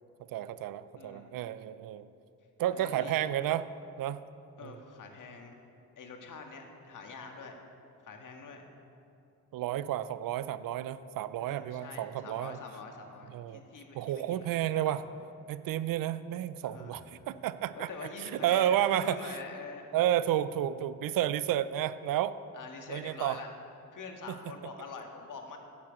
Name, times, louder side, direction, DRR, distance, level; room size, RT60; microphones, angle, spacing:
voice 1, 0.3-2.1 2.6-3.7 4.0-4.2 4.6-4.8 9.5-12.6 13.3-13.6 13.9-15.0 15.5-17.9 18.3-19.2 19.9-22.3 22.9-23.4, right 12 dB, 70° right, 15 dB, 0.5 m, -31 dB
voice 2, 1.0-1.3 2.7-3.3 4.6-5.6 6.0-7.6 8.0-8.7 11.4-14.5 14.9-15.2 16.6-17.0 17.7-19.9 22.5-23.5 23.9-25.6, left 4 dB, 60° left, 3 dB, 1.7 m, -45 dB
10.0 x 7.5 x 7.3 m, 2.6 s
supercardioid pair, 70°, 36 cm